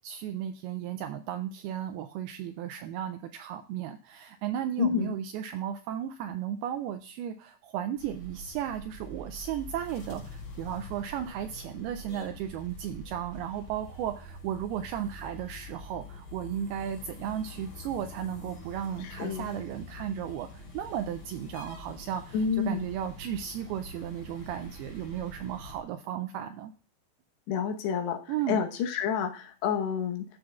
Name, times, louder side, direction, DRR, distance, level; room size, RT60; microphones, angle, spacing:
voice 1, 0.0-26.7 28.3-28.6, right 10 dB, 90° right, 8 dB, 2.2 m, -35 dB
voice 2, 4.8-5.1 19.2-19.5 22.3-22.8 27.5-28.2 28.5-30.3, left 7 dB, 75° left, 4 dB, 3.1 m, -29 dB
sound 1, 8.0-25.8, left 1 dB, 60° left, 4.8 m, -45 dB
13.0 x 6.5 x 2.3 m, 0.38 s
omnidirectional pair, 5.0 m